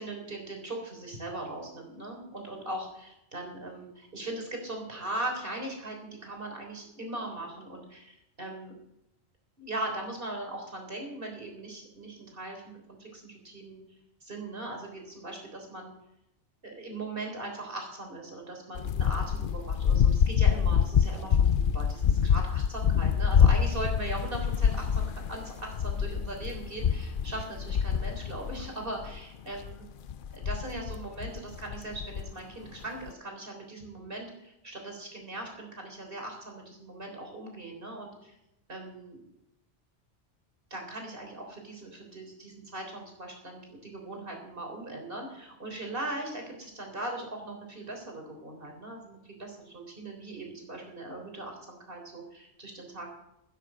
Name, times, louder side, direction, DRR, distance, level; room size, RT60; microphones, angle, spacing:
voice 1, 0.0-8.7 9.6-13.8 14.2-15.9 16.6-21.5 21.7-29.8 30.3-38.4 38.7-39.2 40.7-53.1, right 2 dB, 55° right, 2 dB, 3.9 m, -39 dB
sound 1, 18.7-29.2 29.5-29.7 30.1-32.3 33.1-33.2, left 7 dB, 60° left, 0.7 m, -26 dB
13.0 x 10.0 x 6.1 m, 0.86 s
omnidirectional pair, 1.1 m